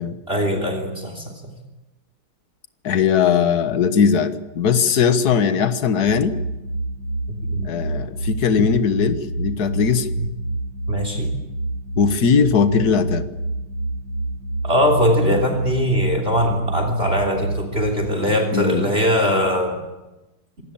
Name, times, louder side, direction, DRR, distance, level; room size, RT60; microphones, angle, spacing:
voice 1, 0.3-1.4 7.3-7.7 10.2-10.3 10.9-11.3 14.6-19.8, equal, 25° right, 5 dB, 3.5 m, -21 dB
voice 2, 2.8-6.4 7.6-10.1 12.0-13.3 18.5-18.9, left 6 dB, 50° left, 10 dB, 1.8 m, -19 dB
sound 1, 6.1-17.9, right 2 dB, 55° right, 2.1 m, -28 dB
26.0 x 19.0 x 8.8 m, 1.1 s
omnidirectional pair, 2.3 m